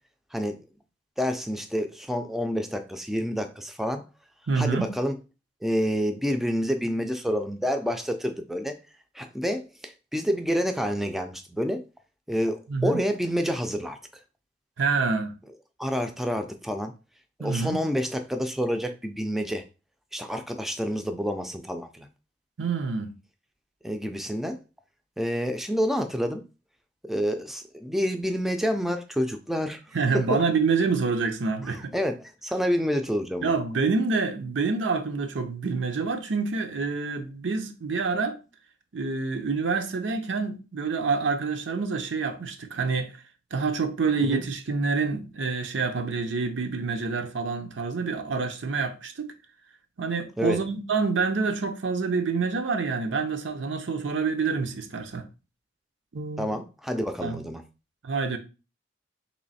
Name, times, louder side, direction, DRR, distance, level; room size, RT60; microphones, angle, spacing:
voice 1, 1.2-4.0 4.6-5.2 5.6-8.8 9.1-11.8 12.3-14.0 15.8-16.9 17.4-19.7 20.1-22.1 23.8-24.6 25.2-26.4 27.0-29.8 30.1-30.4 31.7-33.5 44.2-44.5 50.4-50.6 56.4-57.6, equal, ahead, 0.3 m, -28 dB
voice 2, 4.5-4.9 12.7-13.0 14.8-15.3 17.4-17.8 22.6-23.1 29.9-32.0 33.4-38.4 38.9-43.1 43.5-49.3 50.0-55.2 56.1-56.5 57.2-57.4 58.0-58.4, right 4 dB, 85° right, 0.6 m, -27 dB
3.1 x 3.1 x 4.1 m
head